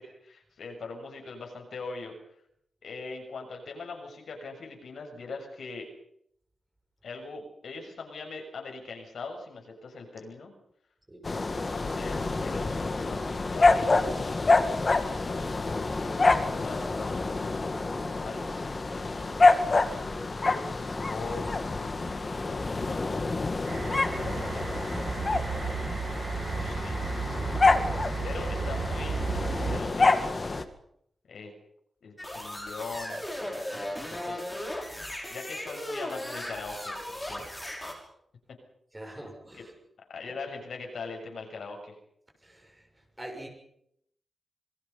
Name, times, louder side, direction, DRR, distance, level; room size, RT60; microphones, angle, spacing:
voice 1, 0.0-2.1 2.8-5.9 7.0-10.5 11.5-29.2 29.6-30.5 31.3-31.5 32.0-34.9 35.3-37.4 39.0-39.3 39.5-39.6 40.1-41.9, left 4 dB, 75° left, 3 dB, 6.9 m, -42 dB
voice 2, 11.1-11.6 28.1-28.2 38.9-39.7 42.4-42.8 43.2-43.5, right 1 dB, 15° right, 1 dB, 6.8 m, -44 dB
sound 1, 11.2-30.6, left 3 dB, 30° left, 1.9 m, -27 dB
sound 2, 23.6-29.8, right 5 dB, 55° right, 4.7 m, -33 dB
sound 3, 32.2-37.9, left 1 dB, 10° left, 6.3 m, -37 dB
27.5 x 22.5 x 5.7 m, 0.71 s
wide cardioid pair, 180°, 0 cm